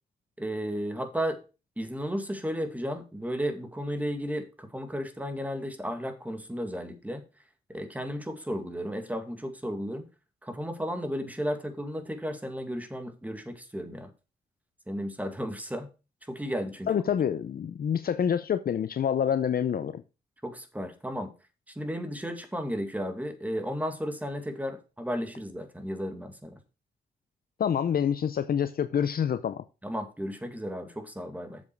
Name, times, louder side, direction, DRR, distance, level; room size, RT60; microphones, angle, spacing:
voice 1, 0.4-1.4 1.8-7.2 7.7-10.1 10.4-14.1 14.9-15.9 16.3-16.9 20.4-21.3 21.8-26.6 29.8-31.6, equal, 10° right, 2.2 m, -34 dB
voice 2, 16.9-20.0 27.6-29.6, left 8 dB, 60° left, 0.7 m, -27 dB
7.4 x 7.3 x 4.7 m
cardioid pair, 75°, 18 cm